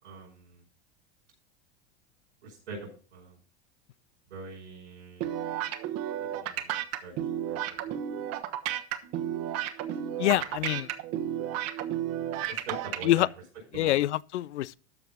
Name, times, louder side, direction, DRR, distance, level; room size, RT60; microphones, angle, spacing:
voice 1, 0.0-0.6 2.4-3.4 4.3-5.3 6.1-6.8 7.0-7.1 7.5-8.0 12.5-13.3 13.7-14.0, right 3 dB, 80° right, 5.5 m, -43 dB
sound 1, 5.2-13.1, right 11 dB, 50° right, 1.3 m, -32 dB
voice 2, 10.2-10.9 13.0-13.3 13.8-14.8, left 15 dB, 85° left, 0.5 m, -25 dB
13.0 x 4.7 x 5.5 m
hypercardioid pair, 100°, 34 cm